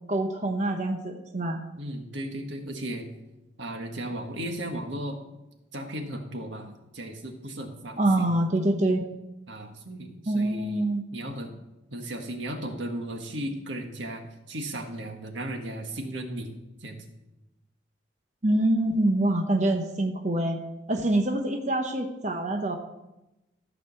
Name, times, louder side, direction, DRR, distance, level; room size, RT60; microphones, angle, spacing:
voice 1, 0.1-1.6 8.0-9.0 10.3-11.0 18.4-20.6 20.9-22.8, right 1 dB, 40° right, 3 dB, 0.9 m, -25 dB
voice 2, 1.8-3.1 3.6-5.2 5.7-8.3 9.5-11.5 11.9-16.5 16.8-17.0, right 1 dB, 85° right, 3 dB, 1.6 m, -36 dB
14.0 x 5.1 x 6.8 m, 0.96 s
head